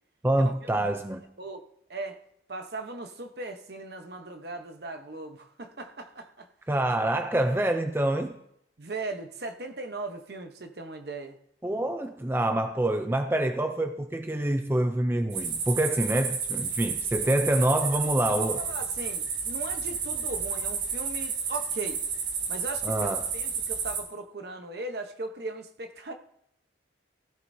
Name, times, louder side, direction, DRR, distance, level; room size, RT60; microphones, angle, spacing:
voice 1, 0.2-1.2 6.7-8.4 11.6-18.6 22.8-23.2, right 1 dB, 10° right, 0.4 m, -26 dB
voice 2, 2.5-6.5 8.8-11.4 18.0-22.0 22.5-22.9 23.3-26.1, right 2 dB, 55° right, 1.0 m, -38 dB
sound 1, 15.3-24.0, right 6 dB, 80° right, 4.2 m, -31 dB
15.5 x 13.0 x 2.7 m
head